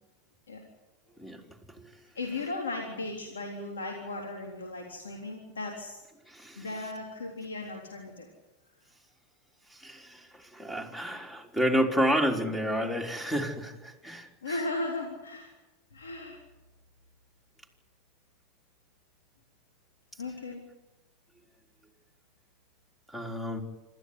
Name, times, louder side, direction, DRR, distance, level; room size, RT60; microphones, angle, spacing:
voice 1, 2.2-6.0 6.6-8.3 14.4-15.5 15.9-16.4 20.2-20.6, left 2 dB, 85° left, 1 dB, 3.7 m, -36 dB
voice 2, 6.3-6.7 9.7-14.6 16.3-16.4 23.1-23.6, equal, 5° left, 4 dB, 4.0 m, -30 dB
27.0 x 13.5 x 9.8 m, 1.1 s
hypercardioid pair, 90°, 0 cm